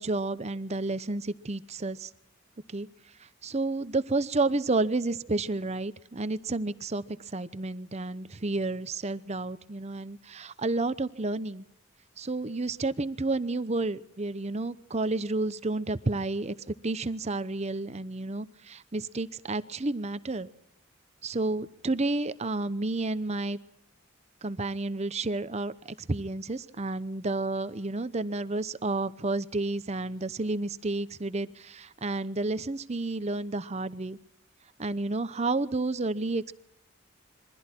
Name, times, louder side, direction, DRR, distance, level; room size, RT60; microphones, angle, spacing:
voice 1, 0.0-2.1 2.7-2.9 3.2-11.6 12.2-20.5 21.2-23.6 24.4-34.2 34.8-36.5, right 2 dB, 35° right, 14 dB, 0.8 m, -31 dB
27.0 x 23.0 x 4.5 m, 0.73 s
head